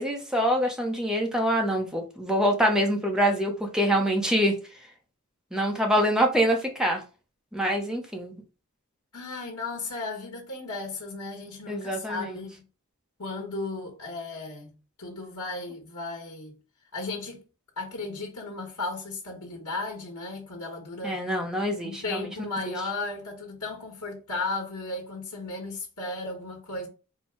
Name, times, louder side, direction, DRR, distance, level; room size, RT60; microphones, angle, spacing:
voice 1, 0.0-4.5 5.5-7.0 7.5-8.3 11.7-12.4 21.0-22.3, equal, 5° right, 0.8 m, -25 dB
voice 2, 9.1-12.6 13.2-16.6 16.9-17.4 17.8-21.2 21.8-26.9, left 3 dB, 85° left, 1.4 m, -35 dB
4.4 x 2.3 x 4.5 m
head